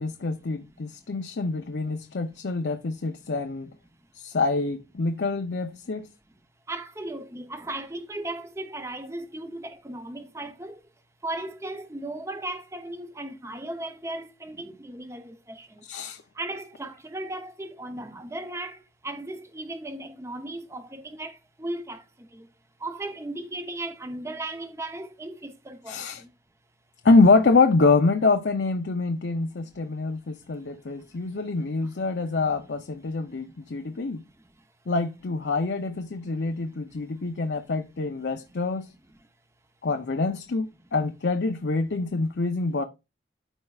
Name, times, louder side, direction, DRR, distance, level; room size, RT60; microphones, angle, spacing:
voice 1, 0.0-3.7 4.1-6.1 15.8-16.2 25.9-26.2 27.0-34.2 34.9-38.9 39.8-42.8, left 3 dB, 75° left, 0.6 m, -25 dB
voice 2, 6.7-10.8 11.2-15.8 16.4-18.8 19.0-22.0 22.3-22.5 22.8-26.0, right 2 dB, 15° right, 0.7 m, -36 dB
13.0 x 4.5 x 2.4 m
head